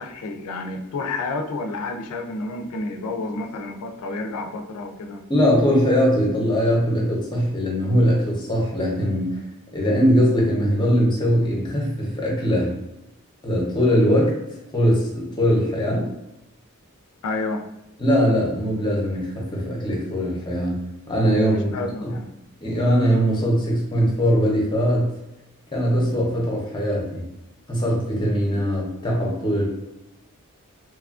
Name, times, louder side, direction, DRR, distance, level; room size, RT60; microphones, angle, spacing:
voice 1, 0.0-5.2 17.2-17.6 21.5-22.3, left 3 dB, 80° left, 5 dB, 0.4 m, -30 dB
voice 2, 5.3-9.4 9.7-12.7 13.4-14.4 14.7-16.1 18.0-21.7 22.1-22.2 22.6-25.1 25.7-27.2 27.7-29.7, equal, 20° left, -3 dB, 0.6 m, -21 dB
3.0 x 2.3 x 2.4 m, 0.88 s
head